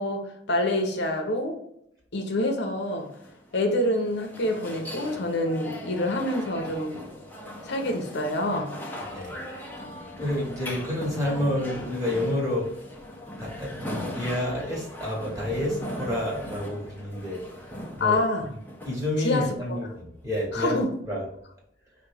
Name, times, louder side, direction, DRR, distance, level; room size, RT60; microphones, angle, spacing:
voice 1, 0.0-1.6 2.1-3.1 3.5-7.0 7.6-8.7 18.0-18.5 19.2-19.5 20.5-20.9, left 1 dB, 65° left, 2 dB, 0.8 m, -26 dB
sound 1, 2.9-19.9, left 1 dB, 10° left, 0.8 m, -39 dB
voice 2, 10.2-12.7 13.4-13.7 14.1-17.4 17.7-18.2 18.8-20.8 21.1-21.2, left 1 dB, 15° right, -3 dB, 1.5 m, -29 dB
5.1 x 2.7 x 3.4 m, 0.74 s
head